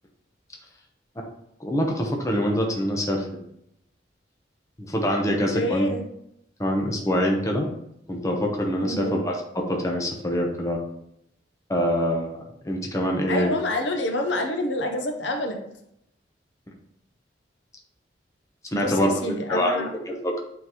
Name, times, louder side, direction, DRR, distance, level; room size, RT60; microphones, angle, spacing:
voice 1, 1.6-3.3 4.8-5.9 6.6-7.7 8.1-10.8 11.7-13.5 18.7-20.4, equal, 15° left, 0 dB, 0.8 m, -25 dB
voice 2, 5.2-6.0 8.8-9.2 13.3-15.6 18.7-19.9, left 1 dB, 75° left, 5 dB, 0.7 m, -27 dB
8.2 x 3.9 x 3.0 m, 0.77 s
head